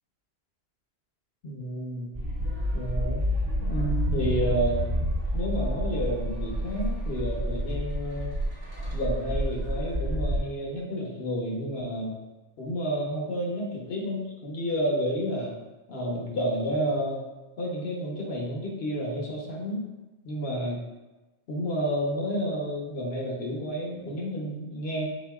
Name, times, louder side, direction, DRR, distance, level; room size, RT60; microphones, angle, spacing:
voice 1, 1.4-2.1 2.7-3.2 3.6-4.8 5.3-8.3 8.9-12.1 12.6-15.5 15.9-17.2 17.6-19.8 20.2-20.8 21.5-25.0, equal, 65° left, -2 dB, 1.1 m, -30 dB
sound 1, 2.1-10.4, equal, 40° right, 1.0 m, -29 dB
5.0 x 3.8 x 2.3 m, 1.1 s
omnidirectional pair, 1.1 m